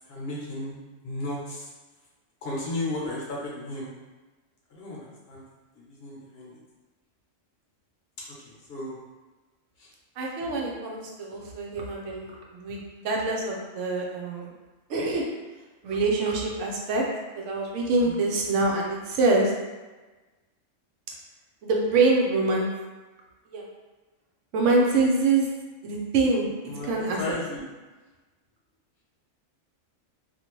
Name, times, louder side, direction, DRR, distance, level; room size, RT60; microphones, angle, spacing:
voice 1, 0.1-0.8 1.0-1.7 2.4-3.9 4.7-5.4 5.9-6.6 8.4-9.0 9.8-9.9 18.0-18.1 26.7-26.9 27.2-27.6, left 2 dB, 60° left, -5 dB, 0.9 m, -34 dB
voice 2, 10.2-14.5 14.9-15.3 15.8-17.0 17.3-19.5 21.6-22.7 23.5-23.6 24.5-25.5 25.8-26.5 26.8-27.4, right 3 dB, 75° right, -1 dB, 0.9 m, -25 dB
2.7 x 2.5 x 2.9 m, 1.2 s
omnidirectional pair, 1.3 m